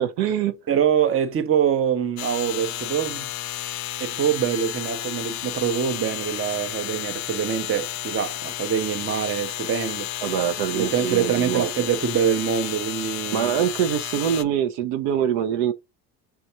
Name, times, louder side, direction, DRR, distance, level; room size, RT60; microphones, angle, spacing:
voice 1, 0.0-0.6 10.2-11.7 13.3-15.7, right 9 dB, 70° right, 0.7 m, -24 dB
voice 2, 0.7-3.3 4.0-10.1 10.7-13.5, right 8 dB, 30° right, 0.8 m, -24 dB
sound 1, 2.2-14.4, left 13 dB, 40° left, 0.5 m, -32 dB
3.5 x 2.4 x 4.3 m
hypercardioid pair, 65°, 43 cm